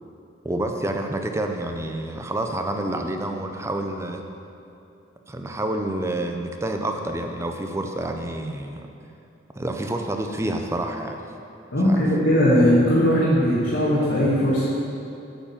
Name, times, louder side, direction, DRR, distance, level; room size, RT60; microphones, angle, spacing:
voice 1, 0.4-4.2 5.3-8.9 9.6-11.3 11.8-12.0, right 1 dB, 15° right, 4 dB, 0.5 m, -28 dB
voice 2, 11.7-14.6, equal, 75° left, -8 dB, 1.6 m, -19 dB
8.8 x 4.9 x 7.1 m, 2.6 s
head